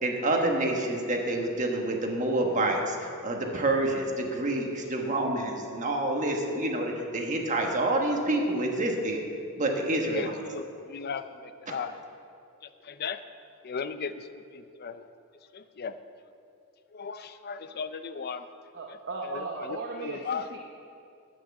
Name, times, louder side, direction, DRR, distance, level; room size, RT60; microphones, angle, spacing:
voice 1, 0.0-9.2 9.6-10.4, right 2 dB, 35° right, 1 dB, 1.3 m, -28 dB
voice 2, 10.0-11.9 12.8-13.2 13.6-15.1 15.5-15.9 16.9-18.5 18.9-19.0 19.2-20.5, left 5 dB, 45° left, 11 dB, 0.5 m, -36 dB
voice 3, 18.7-20.6, right 3 dB, 55° right, 1 dB, 0.8 m, -36 dB
8.9 x 8.6 x 7.1 m, 2.5 s
head